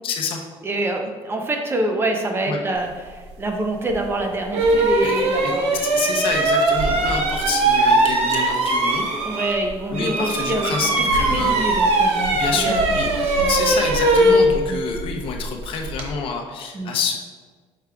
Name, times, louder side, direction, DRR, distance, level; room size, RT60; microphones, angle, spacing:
voice 1, 0.0-0.4 2.5-2.6 5.0-9.1 9.9-11.6 12.3-13.1 13.5-17.2, left 5 dB, 55° left, 3 dB, 0.6 m, -27 dB
voice 2, 0.6-5.8 9.2-12.8 13.1-13.5 14.7-14.8 16.7-17.0, right 1 dB, 20° right, 3 dB, 0.5 m, -26 dB
sound 1, 3.9-4.0 4.5-9.7 9.9-16.1, right 2 dB, 70° right, 0.8 m, -20 dB
4.9 x 4.7 x 2.3 m, 1.5 s
cardioid pair, 125°, 11 cm